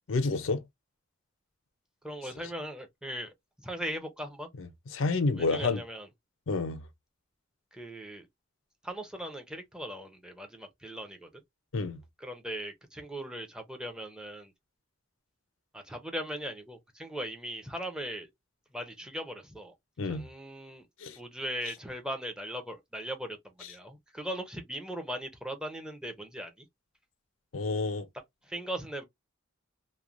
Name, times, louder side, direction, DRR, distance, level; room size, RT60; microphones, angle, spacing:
voice 1, 0.1-0.6 4.6-5.8 6.5-6.8 11.7-12.0 20.0-20.3 21.0-21.2 27.5-28.1, left 3 dB, 80° left, 0.5 m, -29 dB
voice 2, 2.0-3.3 3.6-4.5 5.4-6.1 7.7-8.3 8.8-11.3 12.2-14.5 15.7-18.3 18.7-19.7 20.1-20.8 21.2-23.4 23.7-26.7 28.5-29.0, equal, 5° right, 0.6 m, -39 dB
3.0 x 2.1 x 2.5 m
head